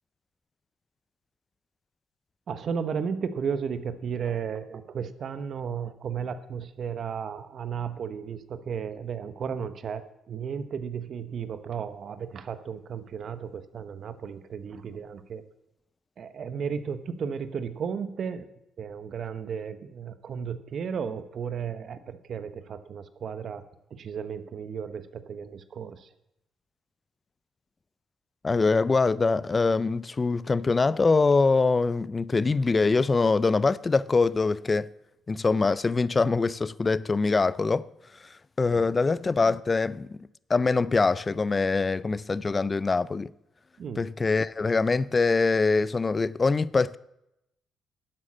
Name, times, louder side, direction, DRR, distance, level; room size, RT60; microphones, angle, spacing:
voice 1, 2.5-15.4 16.2-18.5 18.8-23.6 23.9-26.1 43.8-44.1, right 7 dB, 55° right, 0.9 m, -34 dB
voice 2, 28.4-34.9 35.3-37.9 38.6-40.1 40.5-43.3 44.0-47.0, left 4 dB, 30° left, 0.4 m, -23 dB
12.0 x 8.3 x 6.2 m
cardioid pair, 90°, 0 cm